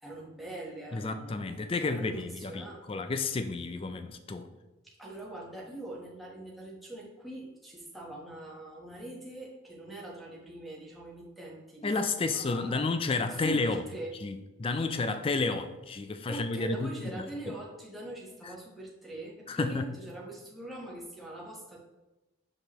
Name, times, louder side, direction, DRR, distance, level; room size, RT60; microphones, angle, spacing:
voice 1, 0.0-2.8 4.8-12.9 13.3-14.2 16.3-21.8, right 1 dB, ahead, 1.1 m, -42 dB
voice 2, 0.9-4.5 11.8-13.8 14.2-17.5 19.5-19.9, left 3 dB, 25° left, 0.3 m, -31 dB
6.0 x 5.4 x 3.0 m
head